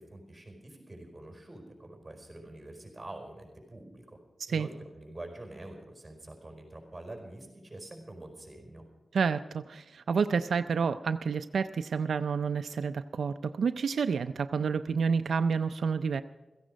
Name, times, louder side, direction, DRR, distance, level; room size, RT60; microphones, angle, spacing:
voice 1, 0.0-4.2 4.5-8.8, right 1 dB, 15° right, 2 dB, 4.5 m, -46 dB
voice 2, 9.1-16.2, right 5 dB, 80° right, 9 dB, 0.5 m, -29 dB
16.5 x 15.0 x 5.2 m, 1.2 s
wide cardioid pair, 145°, 0 cm